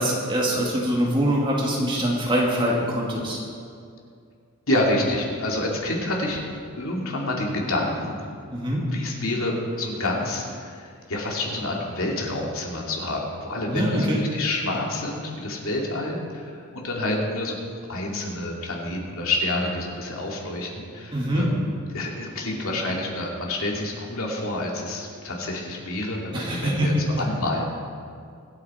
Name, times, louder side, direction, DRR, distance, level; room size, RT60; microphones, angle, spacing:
voice 1, 0.0-3.4 8.5-8.8 13.7-14.2 21.1-21.5 26.3-27.2, equal, 20° right, -4 dB, 2.4 m, -24 dB
voice 2, 4.7-6.4 6.8-8.2 8.9-17.6 17.9-21.6 21.9-27.7, left 1 dB, 75° left, -2 dB, 2.6 m, -28 dB
25.0 x 8.8 x 4.4 m, 2.3 s
head